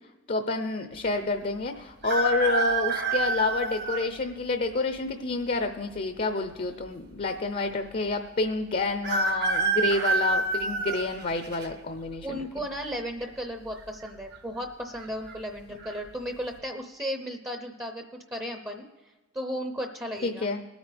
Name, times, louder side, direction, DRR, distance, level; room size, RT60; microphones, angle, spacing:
voice 1, 0.3-12.5 20.2-20.6, left 3 dB, 45° left, 8 dB, 0.6 m, -28 dB
sound 1, 2.0-4.1 4.7-4.8 5.9-6.5 6.8-6.9 7.1-7.2 9.0-11.7 12.2-12.6 13.7-14.1 14.3-14.4 15.0-15.3 15.8-16.0, right 3 dB, 55° right, 1.1 m, -27 dB
voice 2, 12.2-18.9 19.3-20.5, equal, 15° right, 5 dB, 0.7 m, -35 dB
20.5 x 9.1 x 3.4 m, 1.2 s
head